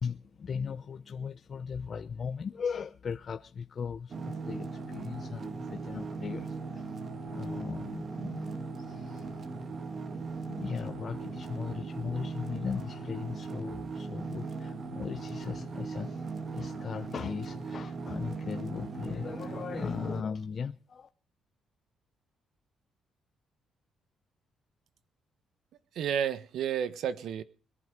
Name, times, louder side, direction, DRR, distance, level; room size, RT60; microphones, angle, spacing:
voice 1, 0.0-6.9 7.3-9.5 10.4-21.1, left 6 dB, 45° left, 0.7 m, -38 dB
sound 1, 4.1-20.2, right 4 dB, 45° right, 1.9 m, -39 dB
voice 2, 25.9-27.4, right 8 dB, 75° right, 1.2 m, -31 dB
21.0 x 11.5 x 5.2 m
cardioid pair, 90°, 0 cm